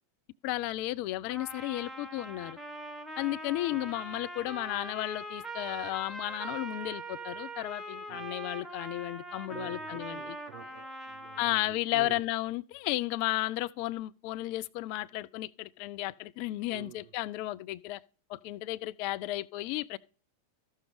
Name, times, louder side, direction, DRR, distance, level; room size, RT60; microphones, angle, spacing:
voice 1, 0.4-2.6 3.2-10.2 11.4-18.0 18.3-20.0, left 17 dB, 45° left, 0.3 m, -33 dB
Trumpet, 1.3-11.7, right 1 dB, 5° right, 1.1 m, -42 dB
voice 2, 9.5-12.2 16.7-17.1, right 12 dB, 50° right, 3.7 m, -48 dB
13.5 x 6.4 x 3.3 m
figure-of-eight pair, 90°, 0 cm